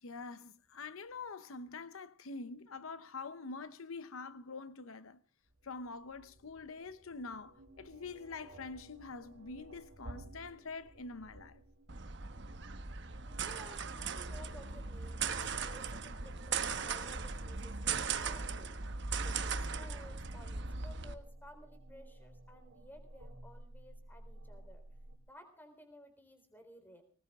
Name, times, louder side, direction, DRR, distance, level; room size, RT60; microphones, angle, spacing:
voice 1, 0.0-5.2 5.6-11.6, left 4 dB, 80° left, 0.8 m, -45 dB
sound 1, 5.4-25.2, right 1 dB, 80° right, 3.1 m, -56 dB
sound 2, 11.9-21.1, right 5 dB, 55° right, 1.3 m, -38 dB
voice 2, 13.2-18.8 19.2-24.8 25.2-27.0, equal, 10° left, 3.8 m, -56 dB
19.5 x 19.5 x 3.6 m
head